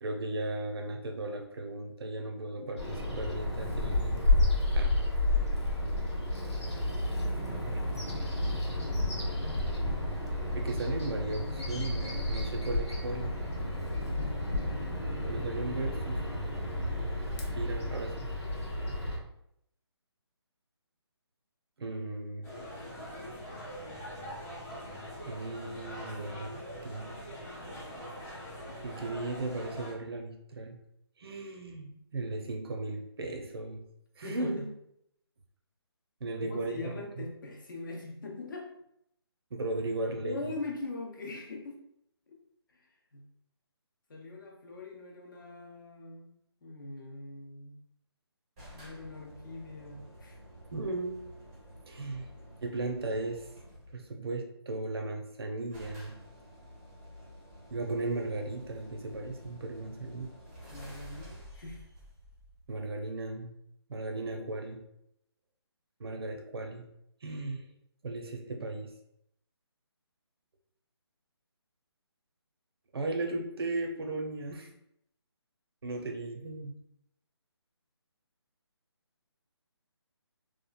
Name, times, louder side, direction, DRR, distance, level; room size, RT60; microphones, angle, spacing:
voice 1, 0.0-4.2 4.7-5.0 7.5-7.8 10.5-13.3 15.3-16.2 17.6-18.3 21.8-22.5 25.3-27.1 28.8-30.8 31.2-33.8 34.2-34.7 36.2-37.2 39.5-40.4 50.7-51.2 51.9-52.3 52.6-53.5 53.9-56.2 57.7-60.3 62.7-63.5 63.9-64.8 66.0-66.9 67.2-67.6 68.0-68.9 72.9-74.7 75.8-76.7, right 2 dB, 60° right, 3 dB, 0.6 m, -36 dB
Bird vocalization bird call bird song, 2.8-19.2, left 1 dB, 80° left, 0.8 m, -31 dB
sound 1, 22.4-29.9, equal, 10° left, 0.9 m, -43 dB
voice 2, 34.2-34.7 36.4-38.7 40.1-41.8 42.3-42.4 42.7-42.9 43.1-43.3 44.1-46.3 46.6-47.8 48.8-50.4 60.7-61.8, left 2 dB, 45° left, 1 dB, 0.6 m, -42 dB
sound 2, 48.6-54.1 55.1-55.2 55.3-55.4 55.7-63.2, equal, 15° right, 0.6 m, -51 dB
2.9 x 2.3 x 2.2 m, 0.76 s
hypercardioid pair, 160°, 14 cm